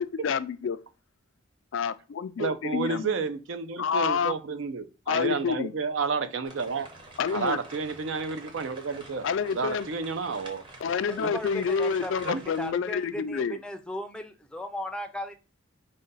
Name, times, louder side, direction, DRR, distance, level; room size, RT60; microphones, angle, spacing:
voice 1, 0.2-0.8 1.7-3.1 3.8-4.3 5.1-5.7 7.2-7.6 9.2-9.9 10.8-13.6, left 6 dB, 65° left, 0.3 m, -28 dB
voice 2, 2.4-6.9 7.3-9.3 9.5-10.6 11.2-11.3 12.2-12.4, right 4 dB, 65° right, 0.5 m, -31 dB
sound 1, 6.4-12.7, right 2 dB, 25° right, 0.8 m, -47 dB
voice 3, 11.1-15.3, equal, 5° left, 0.4 m, -37 dB
4.9 x 2.2 x 4.0 m
head